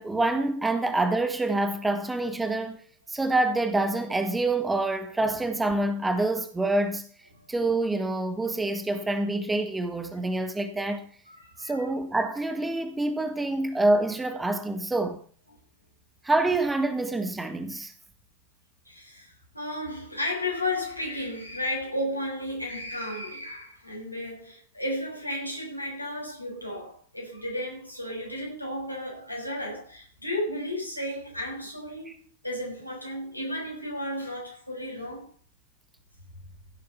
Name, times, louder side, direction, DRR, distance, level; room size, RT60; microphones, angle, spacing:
voice 1, 0.0-2.8 3.1-7.1 7.5-11.1 11.6-15.2 16.2-17.9, right 2 dB, 10° right, 1.8 m, -26 dB
voice 2, 11.4-11.8 18.9-32.2 32.4-35.3, left 1 dB, 90° left, 6.6 m, -33 dB
15.5 x 8.3 x 5.8 m
figure-of-eight pair, 90°, 0 cm